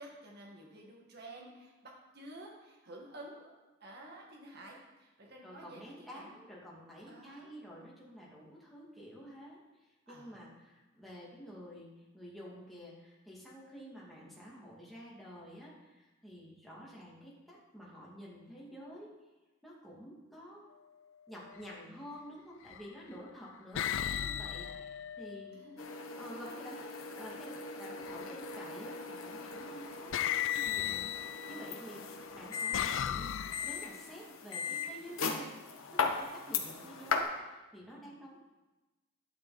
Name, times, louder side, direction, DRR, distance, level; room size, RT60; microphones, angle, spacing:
voice 1, 0.0-6.4 7.1-7.6 10.1-10.3 25.5-25.9 31.4-31.9 37.9-38.2, right 1 dB, 50° right, -1 dB, 2.1 m, -51 dB
voice 2, 5.4-9.6 10.1-19.1 19.6-20.7 21.3-25.6 26.2-35.5 35.9-38.4, equal, ahead, -6 dB, 2.8 m, -50 dB
sound 1, 21.5-21.8 22.6-23.1 23.7-25.8 28.0-28.6 29.6-29.7 30.1-31.7 32.3-34.0, left 10 dB, 65° left, 0.4 m, -36 dB
sound 2, 25.8-37.2, left 5 dB, 85° left, 1.2 m, -39 dB
11.5 x 10.5 x 4.4 m, 1.1 s
head